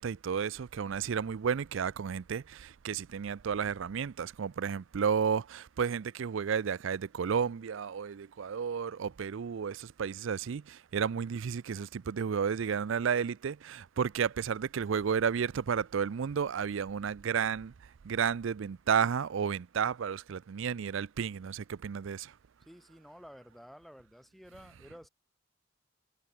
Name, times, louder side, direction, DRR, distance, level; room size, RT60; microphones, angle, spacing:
voice 1, 0.0-17.7 18.0-22.3, right 7 dB, 65° right, 0.4 m, -32 dB
voice 2, 22.7-25.1, equal, ahead, 4.0 m, -52 dB
head